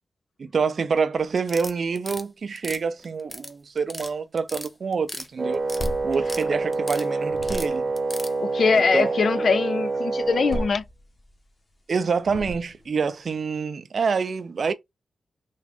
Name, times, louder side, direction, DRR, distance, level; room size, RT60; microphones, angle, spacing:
voice 1, 0.4-5.6 6.0-7.9 8.9-9.1 11.9-14.7, right 5 dB, 60° right, 0.5 m, -26 dB
sound 1, 1.4-2.2 2.6-3.5 3.8-4.1 4.4-5.3 5.5-6.4 6.7-7.1 7.4-8.3, equal, 10° left, 0.7 m, -36 dB
Wind instrument woodwind instrument, 5.4-10.7, right 3 dB, 25° right, 0.8 m, -27 dB
sound 2, 5.5-7.0 7.3-8.0 10.2-11.4 12.2-13.0, equal, 40° left, 1.0 m, -35 dB
voice 2, 8.4-10.8, left 5 dB, 65° left, 0.4 m, -22 dB
3.6 x 2.4 x 3.3 m
cardioid pair, 70°, 0 cm